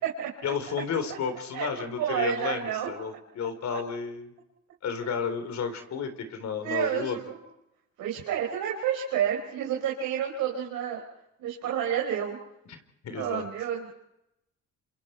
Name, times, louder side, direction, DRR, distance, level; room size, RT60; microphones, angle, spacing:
voice 1, 0.4-4.3 4.8-7.2 12.7-12.8 13.0-13.5, left 6 dB, 65° left, 8 dB, 4.0 m, -32 dB
voice 2, 2.0-2.9 6.6-7.4 8.0-11.0 11.4-12.4 13.1-13.9, right 9 dB, 90° right, -1 dB, 4.5 m, -29 dB
28.0 x 27.5 x 4.6 m, 0.84 s
cardioid pair, 90°, 30 cm